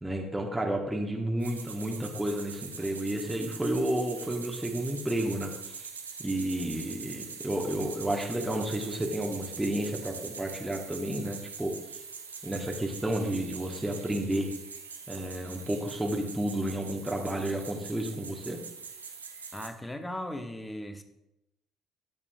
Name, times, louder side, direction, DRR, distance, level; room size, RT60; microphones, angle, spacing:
voice 1, 0.0-5.9 6.2-11.7 12.4-14.5 15.1-18.6, right 1 dB, 10° right, 0 dB, 1.1 m, -31 dB
sound 1, 1.4-19.7, right 5 dB, 80° right, 0.6 m, -43 dB
voice 2, 19.5-21.0, left 1 dB, 10° left, 8 dB, 0.8 m, -37 dB
11.0 x 6.8 x 2.3 m, 0.86 s
figure-of-eight pair, 50°, 0 cm